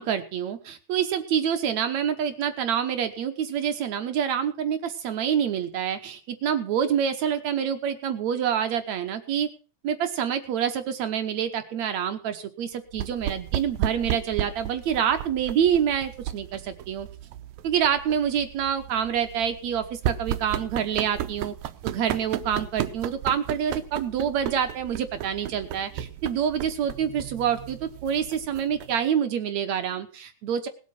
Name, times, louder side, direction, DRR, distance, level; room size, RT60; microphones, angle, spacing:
voice 1, 0.0-9.5 9.8-17.1 17.6-21.5 21.8-30.7, right 8 dB, 65° right, 8 dB, 2.1 m, -27 dB
sound 1, 12.9-29.1, right 11 dB, 90° right, 2.5 m, -34 dB
19.0 x 8.2 x 5.8 m, 0.37 s
omnidirectional pair, 3.9 m